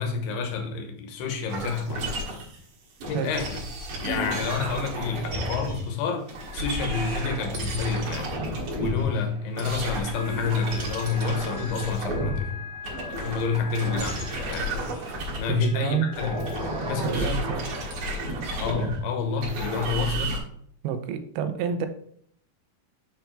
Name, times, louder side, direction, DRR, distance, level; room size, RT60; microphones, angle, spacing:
voice 1, 0.0-2.1 3.0-3.6 4.0-8.3 8.7-12.6 13.2-15.0 15.4-17.4 18.6-20.4, left 5 dB, 90° left, 5 dB, 3.0 m, -29 dB
sound 1, 1.5-2.6 3.0-5.9 6.3-12.5 12.7-15.7 16.1-20.4, equal, 55° right, 2.2 m, -32 dB
sound 2, 10.1-16.9, left 7 dB, 70° left, 0.8 m, -43 dB
voice 2, 15.5-16.1 17.0-17.6 20.8-21.9, right 8 dB, 85° right, 9 dB, 2.6 m, -28 dB
6.8 x 4.5 x 4.4 m, 0.64 s
omnidirectional pair, 4.5 m